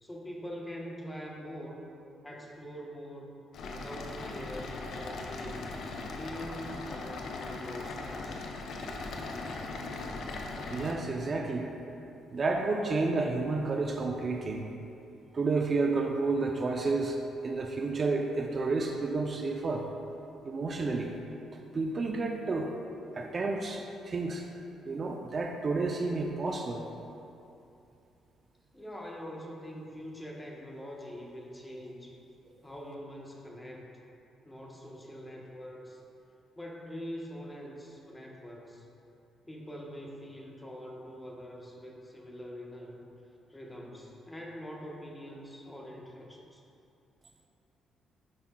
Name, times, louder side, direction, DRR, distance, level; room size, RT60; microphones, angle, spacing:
voice 1, 0.0-1.8 2.2-3.4 3.7-5.8 6.1-8.5 28.7-32.2 32.6-33.9 34.4-36.0 36.5-38.9 39.5-43.0 43.5-46.6, equal, 10° left, -2 dB, 1.0 m, -44 dB
sound 1, 3.5-10.9, left 3 dB, 70° left, 0.7 m, -39 dB
voice 2, 10.7-11.7 12.3-14.6 15.3-19.9 20.4-21.1 21.5-22.7 23.1-24.4 24.8-26.8, right 3 dB, 40° right, 2 dB, 0.5 m, -31 dB
10.0 x 5.7 x 2.3 m, 2.8 s
cardioid pair, 90°, 0 cm